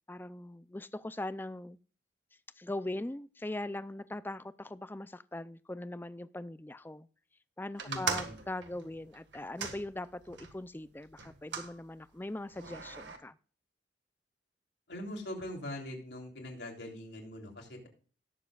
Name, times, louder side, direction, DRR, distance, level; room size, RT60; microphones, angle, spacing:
voice 1, 0.1-1.8 2.6-7.1 7.6-13.4, left 1 dB, 10° left, 15 dB, 0.4 m, -41 dB
voice 2, 7.8-8.4 14.9-17.9, left 1 dB, 75° left, 0 dB, 3.3 m, -42 dB
sound 1, 7.8-10.5 11.2-11.7 12.5-13.2, right 5 dB, 85° right, 1.8 m, -39 dB
18.5 x 7.2 x 2.4 m, 0.42 s
head